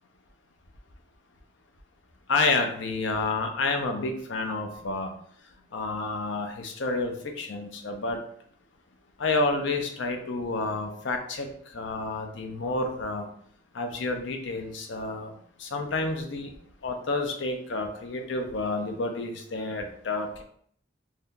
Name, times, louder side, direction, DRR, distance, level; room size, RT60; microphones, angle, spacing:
voice 1, 2.3-5.1 5.7-8.2 9.2-13.3 13.7-15.3 15.6-16.5 16.8-20.4, left 3 dB, 70° left, 5 dB, 0.5 m, -29 dB
2.7 x 2.3 x 3.5 m, 0.63 s
head